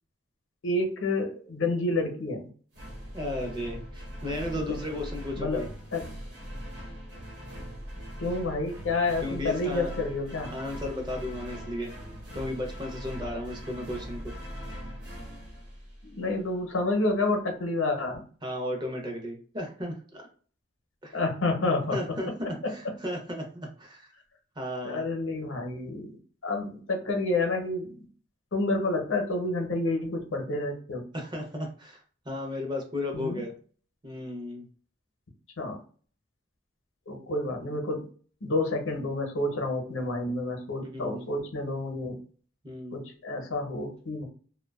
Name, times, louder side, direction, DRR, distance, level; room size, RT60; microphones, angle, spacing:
voice 1, 0.6-2.5 4.7-4.8 5.4-5.6 5.9-6.1 8.2-10.6 16.0-18.2 21.1-22.0 22.6-22.7 24.8-26.2 26.4-27.9 28.5-31.0 33.1-33.4 35.6-35.8 37.1-38.1 38.4-42.2 42.9-44.2, left 2 dB, 85° left, 3 dB, 0.7 m, -29 dB
sound 1, 2.7-16.4, equal, 55° right, 1.0 m, -40 dB
voice 2, 3.1-5.7 9.2-9.9 10.5-11.9 12.3-14.3 18.4-20.2 21.0-21.2 21.9-24.1 24.6-25.0 31.1-33.5 34.0-34.6 40.8-41.3 42.6-43.0, left 1 dB, 20° right, 1 dB, 0.5 m, -35 dB
2.5 x 2.2 x 2.3 m, 0.42 s
head